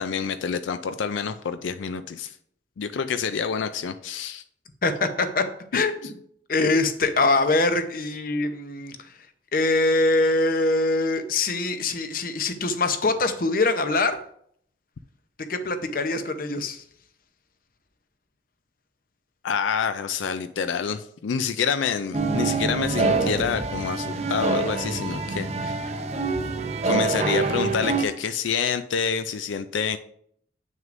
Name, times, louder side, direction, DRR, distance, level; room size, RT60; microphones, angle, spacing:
voice 1, 0.0-2.3 2.8-4.4 5.7-5.8 19.4-25.9 26.8-30.0, left 6 dB, 85° left, 10 dB, 0.4 m, -27 dB
voice 2, 4.8-5.4 5.7-5.9 6.5-9.0 9.5-14.2 15.5-16.8, left 2 dB, 50° left, 8 dB, 0.7 m, -23 dB
Different compositions, 22.1-28.0, right 3 dB, 35° right, 0.6 m, -26 dB
8.8 x 6.3 x 2.6 m, 0.65 s
head